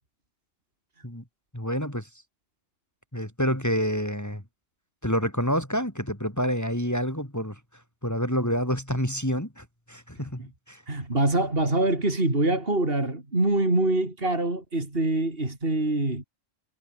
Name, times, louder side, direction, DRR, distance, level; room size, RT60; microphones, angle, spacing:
voice 1, 1.5-2.1 3.1-4.4 5.0-7.6 8.0-10.8, equal, 10° left, 4.3 m, -28 dB
voice 2, 10.9-16.2, right 2 dB, 45° right, 4.7 m, -24 dB
omnidirectional pair, 1.4 m